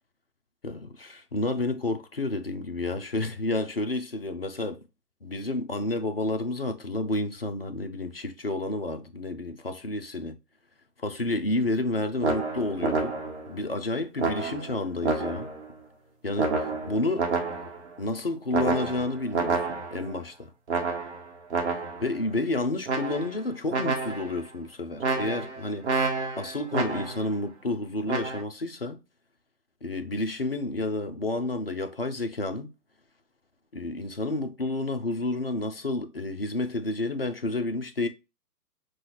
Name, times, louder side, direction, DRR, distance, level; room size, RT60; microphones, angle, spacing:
voice 1, 0.6-4.8 5.2-10.4 11.0-13.2 13.5-15.5 16.2-17.3 18.0-20.5 22.0-25.9 26.4-29.0 29.8-32.7 33.7-38.1, left 2 dB, 40° left, 0.4 m, -30 dB
sound 1, 12.2-13.5 14.2-15.7 16.4-17.9 18.5-20.1 20.7-22.1 22.9-23.4 23.7-24.4 25.0-27.3 28.1-28.4, right 4 dB, 45° right, 1.1 m, -29 dB
6.1 x 2.3 x 2.9 m
figure-of-eight pair, 140°, 49 cm